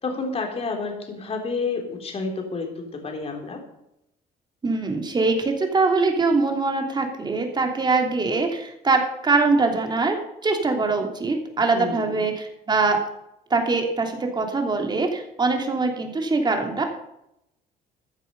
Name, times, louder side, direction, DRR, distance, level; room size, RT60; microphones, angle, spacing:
voice 1, 0.0-3.6 11.7-12.3, left 4 dB, 35° left, 3 dB, 3.5 m, -30 dB
voice 2, 4.6-10.2 10.4-13.0 13.5-16.8, right 3 dB, 25° right, 3 dB, 3.2 m, -23 dB
14.5 x 10.0 x 5.5 m, 0.82 s
cardioid pair, 110°, 17 cm